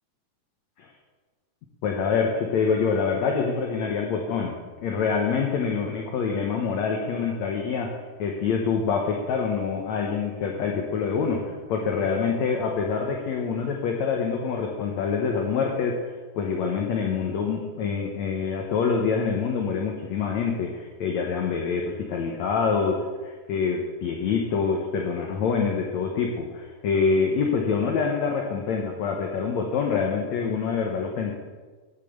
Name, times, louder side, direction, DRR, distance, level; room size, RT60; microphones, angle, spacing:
voice 1, 1.8-4.5 4.8-7.9 8.2-31.3, left 5 dB, 65° left, 1 dB, 1.8 m, -26 dB
9.1 x 8.8 x 7.9 m, 1.4 s
omnidirectional pair, 4.5 m